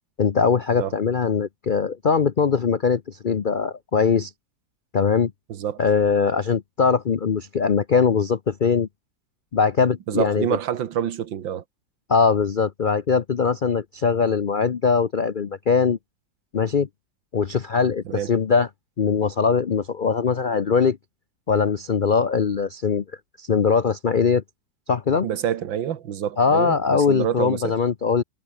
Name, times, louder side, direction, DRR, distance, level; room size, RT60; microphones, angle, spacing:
voice 1, 0.2-4.3 4.9-5.3 5.8-8.9 9.5-10.6 12.1-16.0 16.5-16.9 17.3-18.7 19.0-21.0 21.5-23.0 23.4-24.4 24.9-25.3 26.4-28.2, left 5 dB, 75° left, 0.4 m, -21 dB
voice 2, 5.5-5.8 10.1-11.6 18.1-18.4 25.2-27.7, right 9 dB, 90° right, 2.0 m, -27 dB
omnidirectional pair, 2.0 m